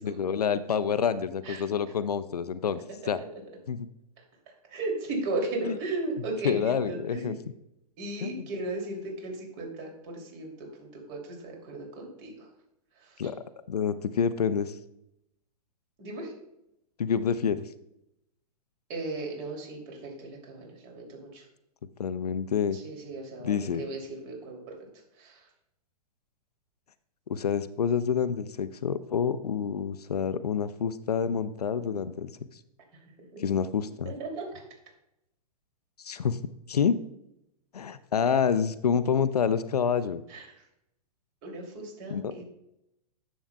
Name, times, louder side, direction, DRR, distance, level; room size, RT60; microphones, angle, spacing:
voice 1, 0.0-3.2 3.7-3.9 5.6-5.8 6.4-7.3 8.2-8.5 13.2-13.4 13.7-14.8 17.0-17.6 22.0-22.8 23.4-23.8 27.3-32.3 33.4-34.1 36.0-36.4 36.7-37.0 37.7-40.2 42.1-42.3, left 7 dB, 75° left, 14 dB, 0.5 m, -28 dB
voice 2, 4.7-7.4 8.0-12.3 13.0-13.1 16.0-16.3 18.9-21.4 22.7-24.0 24.3-24.6 25.2-25.4 33.3-33.4 34.0-34.6 40.3-40.5 41.4-42.4, right 2 dB, 40° right, 0 dB, 2.8 m, -36 dB
10.0 x 7.3 x 2.3 m, 0.82 s
figure-of-eight pair, 110°, 20 cm